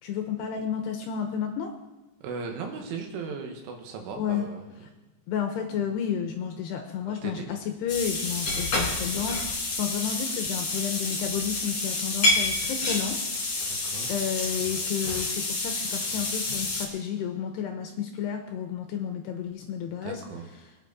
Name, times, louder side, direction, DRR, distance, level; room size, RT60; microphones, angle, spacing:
voice 1, 0.0-1.7 4.2-4.5 5.3-13.2 13.6-20.2, left 8 dB, 75° left, 4 dB, 2.6 m, -31 dB
voice 2, 2.2-4.6 7.1-7.5 13.6-14.1 19.9-20.5, right 5 dB, 75° right, 3 dB, 4.0 m, -37 dB
sound 1, 7.9-16.9, left 2 dB, 40° left, 4.1 m, -29 dB
23.0 x 9.4 x 4.2 m, 1.1 s
omnidirectional pair, 5.7 m